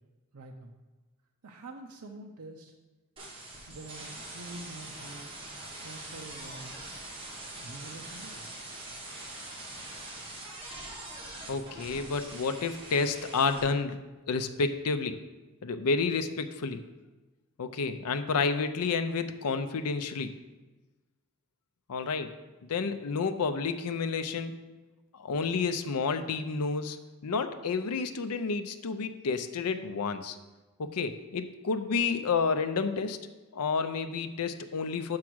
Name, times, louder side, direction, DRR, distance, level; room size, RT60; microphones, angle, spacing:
voice 1, 0.3-0.7 1.4-2.7 3.7-5.3 5.8-6.9 7.6-8.5, right 2 dB, 85° right, 1 dB, 0.6 m, -46 dB
sound 1, 3.2-13.6, right 2 dB, 25° right, 1.5 m, -43 dB
voice 2, 11.5-14.0 14.3-15.2 15.6-16.8 17.6-20.3 21.9-22.3 22.7-24.6 25.1-27.0 27.2-30.4 30.8-33.2 33.5-35.2, left 4 dB, 90° left, 9 dB, 0.5 m, -30 dB
6.0 x 4.7 x 6.2 m, 1.2 s
head